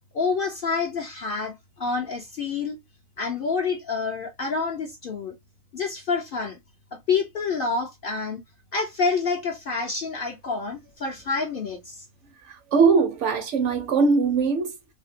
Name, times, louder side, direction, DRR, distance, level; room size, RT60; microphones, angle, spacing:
voice 1, 0.1-2.8 3.2-5.3 5.7-6.6 6.9-8.4 8.7-12.0, left 4 dB, 55° left, 0.6 m, -28 dB
voice 2, 12.5-14.8, right 5 dB, 65° right, 0.9 m, -21 dB
3.4 x 2.1 x 2.5 m
omnidirectional pair, 1.5 m